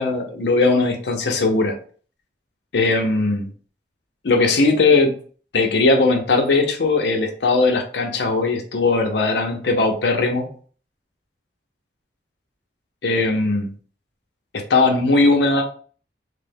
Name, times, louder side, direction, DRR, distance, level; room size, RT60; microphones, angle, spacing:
voice 1, 0.0-1.8 2.7-3.5 4.2-5.1 5.5-10.5 13.0-13.7 14.5-15.6, left 3 dB, 75° left, 3 dB, 0.6 m, -19 dB
3.2 x 2.0 x 3.4 m, 0.43 s
head